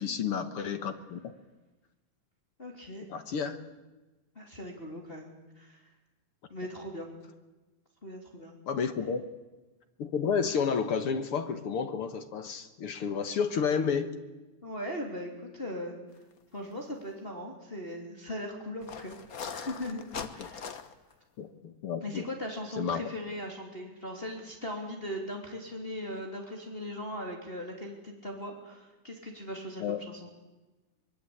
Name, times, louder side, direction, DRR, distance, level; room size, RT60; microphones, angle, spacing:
voice 1, 0.0-1.3 3.1-3.6 8.7-9.2 10.0-14.1 21.4-22.2 22.8-23.0 29.8-30.0, left 6 dB, 55° left, 8 dB, 1.9 m, -31 dB
voice 2, 2.6-3.0 4.3-5.8 6.5-7.1 8.0-8.6 14.6-15.9 16.5-20.7 22.0-30.3, left 1 dB, 20° left, 1 dB, 3.1 m, -39 dB
sound 1, 16.5-16.7 17.1-17.2 18.8-21.1, left 6 dB, 80° left, 0.8 m, -41 dB
24.0 x 23.5 x 8.7 m, 1.1 s
omnidirectional pair, 3.6 m